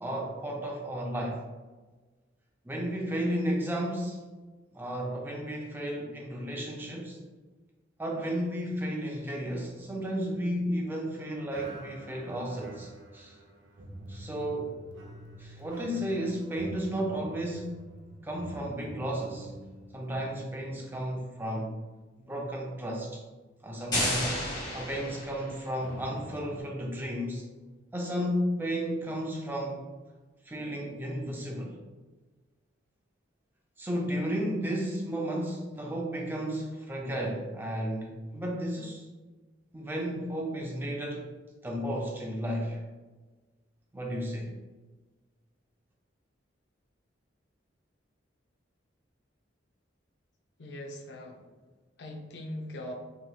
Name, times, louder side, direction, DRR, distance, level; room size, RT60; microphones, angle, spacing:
voice 1, 0.0-1.4 2.6-4.2 4.7-7.2 8.0-13.4 14.1-14.8 15.4-17.8 18.2-19.5 19.9-21.8 22.3-23.2 23.6-24.4 24.7-27.5 27.9-29.8 30.4-31.8 33.8-39.1 39.7-41.3 41.6-42.8 43.9-44.5, equal, 10° right, -1 dB, 0.4 m, -33 dB
sound 1, 9.8-11.1 11.5-21.9 22.2-22.4 23.0-23.1 25.8-26.6, right 1 dB, 70° right, 0.5 m, -48 dB
sound 2, 23.9-25.7, left 1 dB, 20° left, 1.0 m, -32 dB
voice 2, 50.6-51.4 52.0-52.9, left 1 dB, 60° left, 0 dB, 0.5 m, -40 dB
3.2 x 2.8 x 2.2 m, 1.3 s
head